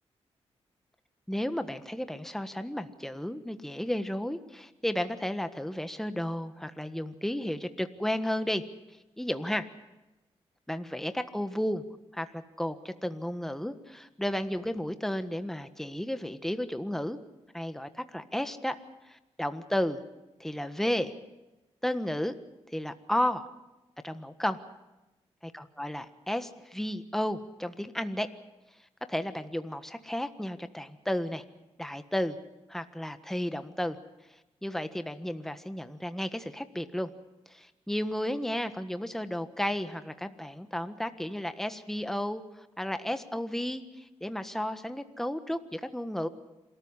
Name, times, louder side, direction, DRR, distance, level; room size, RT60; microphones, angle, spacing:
voice 1, 1.3-8.6 9.2-9.6 10.7-11.8 12.1-17.2 17.5-18.8 19.1-20.0 20.4-21.1 21.8-22.4 22.7-23.4 24.0-24.6 25.5-28.3 29.1-31.4 31.8-32.4 32.7-34.0 34.6-37.1 37.5-46.3, left 1 dB, 5° left, 9 dB, 1.4 m, -33 dB
27.5 x 14.0 x 9.8 m, 1.0 s
cardioid pair, 60°, 12 cm